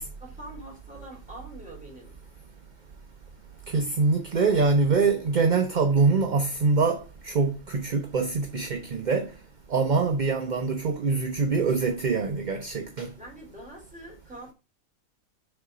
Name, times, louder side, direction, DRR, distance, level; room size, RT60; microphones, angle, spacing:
voice 1, 0.2-2.1 13.2-14.5, right 1 dB, 5° right, 3.2 m, -44 dB
voice 2, 3.7-9.3 9.7-13.1, right 4 dB, 45° right, 0.7 m, -24 dB
6.7 x 4.0 x 4.9 m
omnidirectional pair, 1.4 m